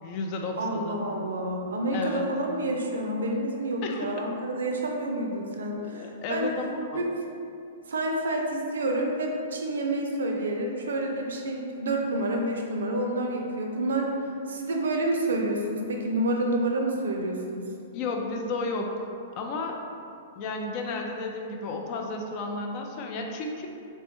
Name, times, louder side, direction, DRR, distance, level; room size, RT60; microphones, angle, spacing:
voice 1, 0.0-1.0 1.9-2.3 3.8-4.2 5.8-7.1 17.9-19.8 20.4-23.7, left 3 dB, 45° left, 2 dB, 0.3 m, -33 dB
voice 2, 0.5-6.5 6.9-7.1 7.9-17.7, right 1 dB, 75° right, 1 dB, 0.4 m, -29 dB
3.1 x 2.1 x 2.9 m, 2.5 s
hypercardioid pair, 115°, 0 cm